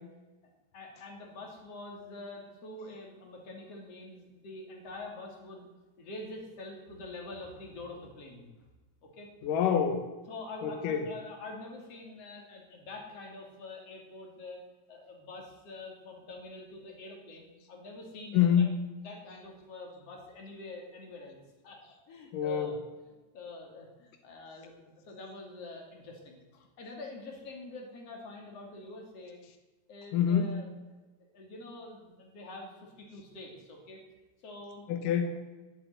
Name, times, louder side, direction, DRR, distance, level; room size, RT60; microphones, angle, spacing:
voice 1, 0.7-5.6 6.0-8.5 9.0-9.3 10.3-14.6 14.9-18.7 19.0-22.8 23.3-29.4 29.9-34.0 34.4-34.8, left 2 dB, 35° left, 1 dB, 3.4 m, -46 dB
voice 2, 9.4-10.1 10.6-11.0 18.3-18.8 22.3-22.7 30.1-30.6 34.9-35.4, left 8 dB, 85° left, 7 dB, 1.8 m, -26 dB
15.5 x 7.6 x 9.6 m, 1.2 s
omnidirectional pair, 5.3 m